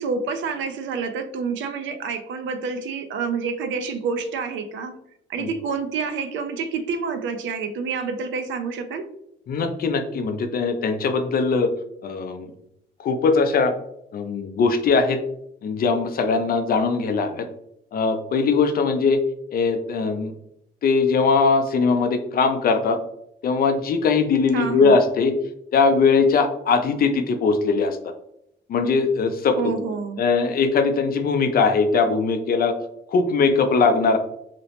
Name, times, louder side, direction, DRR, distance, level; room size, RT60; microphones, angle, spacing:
voice 1, 0.0-5.0 5.3-9.1 24.5-25.0 29.5-30.2, right 5 dB, 70° right, 7 dB, 0.4 m, -28 dB
voice 2, 9.5-11.7 12.0-12.5 13.0-13.7 14.1-15.2 15.6-17.5 17.9-19.2 19.5-20.3 20.8-23.0 23.4-25.3 25.7-28.0 28.7-29.6 30.2-32.8 33.1-34.2, left 4 dB, 50° left, 7 dB, 0.4 m, -20 dB
2.9 x 2.0 x 2.8 m, 0.75 s
cardioid pair, 90°, 20 cm